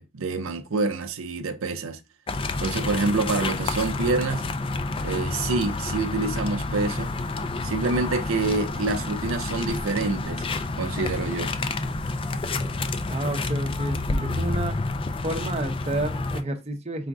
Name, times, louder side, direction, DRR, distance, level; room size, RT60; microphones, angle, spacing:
voice 1, 0.0-2.0 2.6-4.5 5.0-7.1 7.6-10.5 10.8-11.5, right 3 dB, 85° right, 0.5 m, -27 dB
sound 1, 2.3-16.4, left 3 dB, 25° left, 0.4 m, -29 dB
voice 2, 13.1-14.8 15.2-17.1, right 1 dB, 30° right, 0.7 m, -30 dB
4.9 x 2.5 x 3.5 m
head